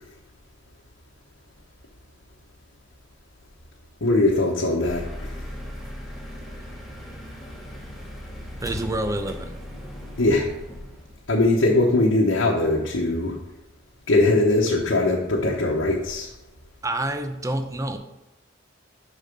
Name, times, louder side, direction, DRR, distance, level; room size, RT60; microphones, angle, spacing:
voice 1, 4.0-5.3 10.2-10.5 11.3-13.4 14.1-16.3, left 2 dB, 70° left, -4 dB, 1.1 m, -21 dB
sound 1, 4.8-11.3, equal, ahead, 1.4 m, -37 dB
voice 2, 8.6-9.6 16.8-18.0, right 1 dB, 15° right, 8 dB, 0.6 m, -28 dB
6.9 x 5.8 x 5.3 m, 0.96 s
head